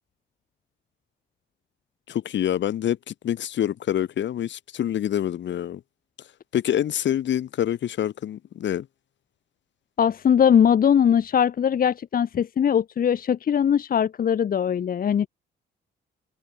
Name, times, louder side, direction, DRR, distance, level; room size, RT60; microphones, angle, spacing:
voice 1, 2.1-5.8 6.5-8.9, left 10 dB, 65° left, 2.2 m, -26 dB
voice 2, 10.0-15.3, left 8 dB, 45° left, 0.9 m, -20 dB
cardioid pair, 90°, 20 cm